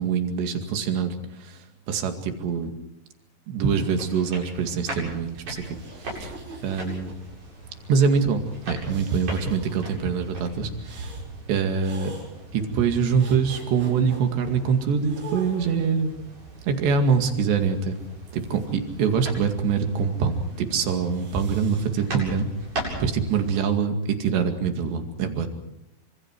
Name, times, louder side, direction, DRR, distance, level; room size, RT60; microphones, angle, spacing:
voice 1, 0.0-2.7 3.5-5.7 6.0-6.3 6.6-7.1 7.9-11.2 11.5-12.1 12.5-16.2 16.6-18.0 18.3-22.5 23.0-25.5, right 6 dB, 85° right, 6 dB, 4.4 m, -24 dB
sound 1, 3.6-23.5, right 2 dB, 45° right, 9.3 m, -40 dB
sound 2, 5.5-7.5 8.8-9.9 10.8-11.3 11.8-12.3 13.2-14.2 15.1-16.0 16.8-17.9 20.9-21.9, right 4 dB, 70° right, 8.4 m, -43 dB
29.5 x 26.0 x 4.7 m, 0.84 s
omnidirectional pair, 4.8 m